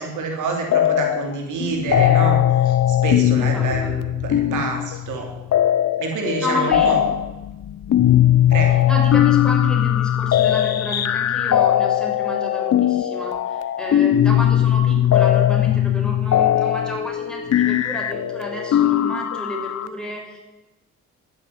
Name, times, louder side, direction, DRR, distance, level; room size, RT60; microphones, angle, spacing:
voice 1, 0.0-2.7 3.0-5.3 6.0-7.0 8.5-8.8, right 4 dB, 80° right, 2 dB, 3.3 m, -27 dB
sound 1, 0.7-1.3 1.6-19.9, left 11 dB, 55° left, 0.9 m, -19 dB
voice 2, 3.4-3.9 6.4-6.9 8.9-20.4, equal, ahead, -1 dB, 6.3 m, -31 dB
12.0 x 11.0 x 9.3 m, 1.1 s
cardioid pair, 90°, 30 cm